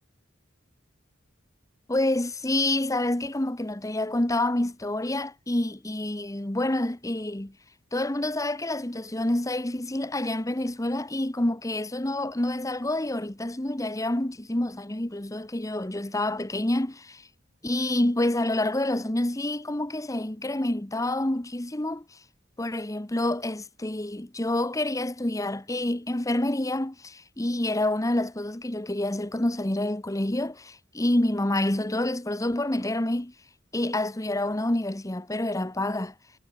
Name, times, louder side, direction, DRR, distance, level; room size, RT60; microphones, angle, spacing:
voice 1, 1.9-7.5 7.9-17.3 17.6-22.0 22.6-33.3 33.7-36.1, left 1 dB, 15° left, 1.1 m, -28 dB
head